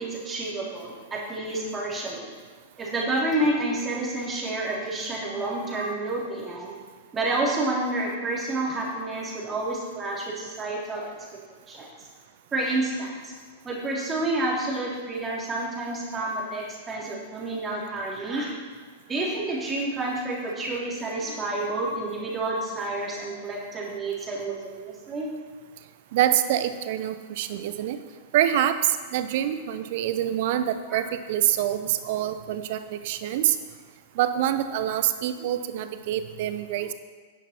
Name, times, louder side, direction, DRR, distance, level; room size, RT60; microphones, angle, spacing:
voice 1, 0.0-2.3 2.8-6.7 7.1-11.1 11.7-11.9 12.5-13.3 13.6-18.5 19.1-25.3 30.9-31.0, right 2 dB, 20° right, -3 dB, 2.9 m, -29 dB
voice 2, 26.1-28.0 28.3-33.6 34.2-36.9, right 11 dB, 50° right, 11 dB, 0.7 m, -26 dB
10.0 x 10.0 x 4.3 m, 1.5 s
figure-of-eight pair, 95°, 0 cm